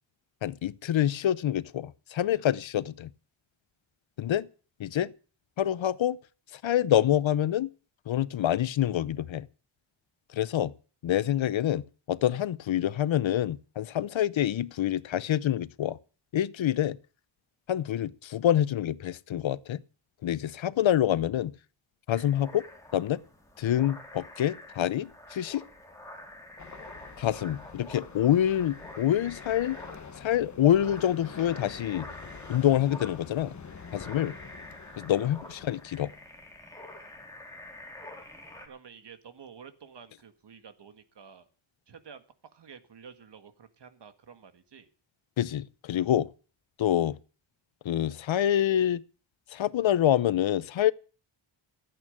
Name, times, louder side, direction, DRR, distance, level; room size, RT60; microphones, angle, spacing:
voice 1, 0.4-3.1 4.2-4.5 4.8-5.1 5.6-6.2 6.6-7.7 8.1-9.5 10.3-10.7 11.0-11.8 12.1-16.0 16.3-17.0 17.7-19.8 20.2-21.5 22.1-22.6 22.9-23.2 23.6-25.6 27.2-29.8 30.2-32.1 32.5-33.5 33.9-34.3 35.0-36.1 45.4-46.3 46.8-47.2 47.8-49.0 49.5-50.9, left 11 dB, 70° left, 0.8 m, -26 dB
sound 1, 22.1-38.7, left 1 dB, 5° left, 3.3 m, -47 dB
sound 2, 26.6-36.5, left 5 dB, 35° left, 1.3 m, -47 dB
voice 2, 35.4-35.8 38.7-41.5 41.9-42.2 42.5-44.9, right 6 dB, 55° right, 1.9 m, -50 dB
14.5 x 8.9 x 8.8 m
wide cardioid pair, 145°, 48 cm